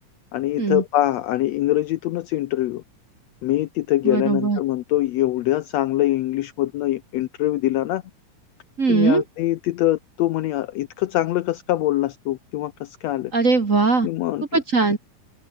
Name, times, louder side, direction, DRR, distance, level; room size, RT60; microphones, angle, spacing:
voice 1, 0.3-2.8 3.4-8.0 8.9-13.3 14.0-14.6, left 15 dB, 75° left, 1.8 m, -23 dB
voice 2, 4.0-4.6 8.8-9.2 13.3-14.1 14.5-15.0, right 4 dB, 30° right, 1.7 m, -20 dB
omnidirectional pair, 3.4 m